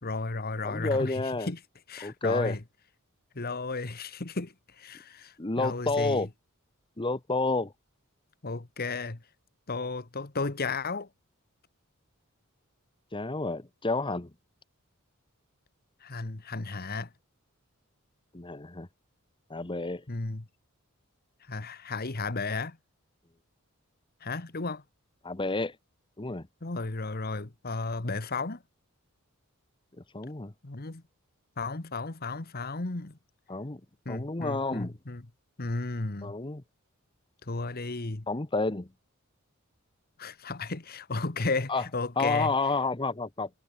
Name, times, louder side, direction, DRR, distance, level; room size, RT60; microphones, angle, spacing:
voice 1, 0.0-1.6 1.9-2.6 3.3-6.3 8.4-9.2 9.7-11.1 16.0-17.1 20.1-20.5 21.5-22.8 24.2-24.8 26.6-28.6 30.6-31.0 31.6-33.2 34.0-35.3 35.6-36.3 37.5-38.2 40.2-42.5, left 3 dB, 45° left, 1.3 m, -34 dB
voice 2, 0.6-1.5 2.0-2.6 5.4-6.3 7.0-7.7 13.1-14.3 18.3-18.9 19.5-20.0 25.2-25.7 26.2-26.4 30.1-30.5 33.5-33.8 34.1-34.9 36.2-36.6 38.3-38.9 41.7-41.9 42.2-43.5, left 3 dB, 20° left, 1.0 m, -30 dB
head